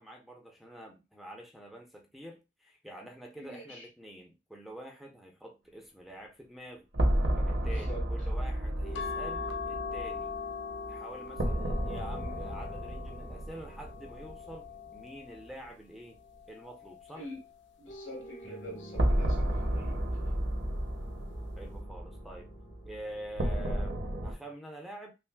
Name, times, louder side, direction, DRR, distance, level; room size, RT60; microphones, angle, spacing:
voice 1, 0.0-6.8 7.4-10.3 10.9-16.2 16.5-17.3 21.6-22.5 22.9-25.1, right 1 dB, ahead, 0.5 m, -47 dB
voice 2, 3.4-3.9 7.6-8.0 17.1-17.4 17.8-20.0, equal, 85° left, 2.0 m, -45 dB
High Tension Two Beats, 6.9-14.7 15.0-15.1 18.9-24.3, right 1 dB, 65° right, 0.8 m, -32 dB
sound 1, 8.4-16.5 17.9-24.5, right 1 dB, 50° left, 1.2 m, -49 dB
sound 2, 8.9-15.6 16.2-17.6 18.8-19.3 19.6-19.7, left 7 dB, 65° left, 0.4 m, -42 dB
5.6 x 2.1 x 2.2 m
head